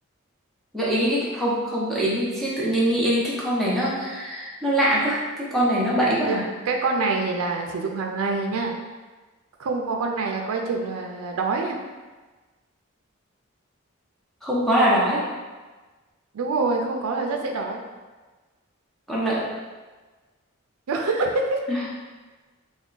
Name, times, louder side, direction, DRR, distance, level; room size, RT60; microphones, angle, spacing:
voice 1, 0.7-6.4 14.4-15.2 19.1-19.5 21.7-21.8, equal, ahead, -8 dB, 0.7 m, -23 dB
voice 2, 6.6-8.7 9.6-11.8 16.3-17.8 20.9-21.6, right 3 dB, 85° right, 2 dB, 0.4 m, -25 dB
3.4 x 2.2 x 3.8 m, 1.3 s
head